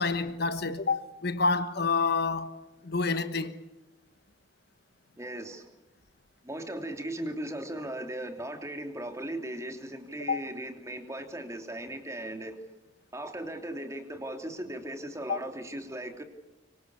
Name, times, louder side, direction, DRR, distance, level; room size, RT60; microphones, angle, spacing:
voice 1, 0.0-3.5 10.3-10.5 15.3-15.4, left 4 dB, 55° left, 1.3 m, -28 dB
voice 2, 5.2-5.7 6.4-12.6 13.1-16.2, right 1 dB, 15° right, 3.0 m, -37 dB
25.0 x 24.5 x 8.5 m
head